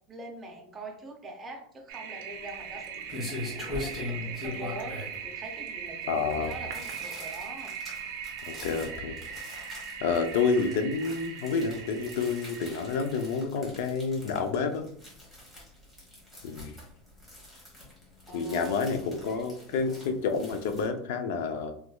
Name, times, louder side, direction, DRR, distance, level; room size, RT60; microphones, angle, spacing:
voice 1, 0.1-3.1 3.4-7.8 18.3-18.9 19.2-20.1, right 1 dB, 15° right, 1 dB, 0.6 m, -44 dB
Toilet flush, 1.9-13.4, right 7 dB, 65° right, 0.5 m, -40 dB
sound 1, 2.3-20.9, left 2 dB, 10° left, 1.2 m, -42 dB
voice 2, 6.1-6.6 8.4-9.2 10.0-14.9 16.4-16.8 18.3-21.7, left 4 dB, 75° left, 7 dB, 0.4 m, -29 dB
3.2 x 3.0 x 2.3 m, 0.63 s
supercardioid pair, 155°, 0 cm